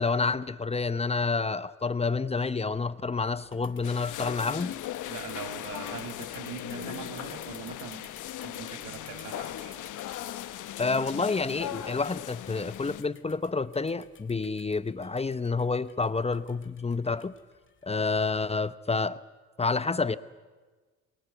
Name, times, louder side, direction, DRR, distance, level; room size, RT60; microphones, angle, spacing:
voice 1, 0.0-4.8 10.8-17.4 17.8-19.2 19.6-20.2, left 4 dB, 20° left, 14 dB, 0.8 m, -29 dB
sound 1, 2.9-18.7, left 6 dB, 40° left, 2.0 m, -55 dB
sound 2, 3.8-13.0, left 12 dB, 80° left, 1.1 m, -38 dB
voice 2, 5.1-8.1 8.4-9.7, right 7 dB, 85° right, 6 dB, 2.7 m, -42 dB
28.0 x 19.5 x 8.0 m, 1.3 s
cardioid pair, 90°, 30 cm